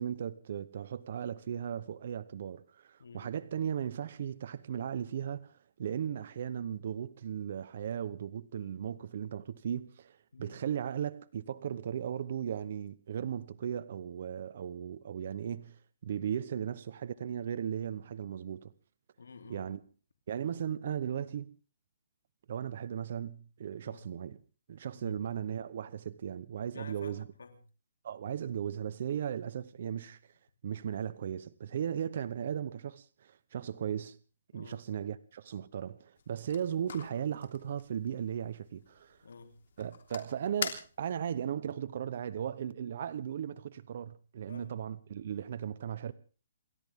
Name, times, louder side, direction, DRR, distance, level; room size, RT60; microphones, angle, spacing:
voice 1, 0.0-18.7 19.5-19.8 20.3-21.5 22.5-24.4 24.7-27.3 28.0-30.2 30.6-34.2 34.5-39.2 39.8-46.1, right 9 dB, 50° right, 0.9 m, -37 dB
voice 2, 19.2-19.7 23.8-24.0 24.9-25.2 26.7-27.6 34.5-34.8 39.2-39.6 44.4-44.7, left 4 dB, 90° left, 3.2 m, -50 dB
sound 1, 36.1-41.4, left 7 dB, 65° left, 3.3 m, -45 dB
28.5 x 13.5 x 3.7 m
hypercardioid pair, 160°, 0 cm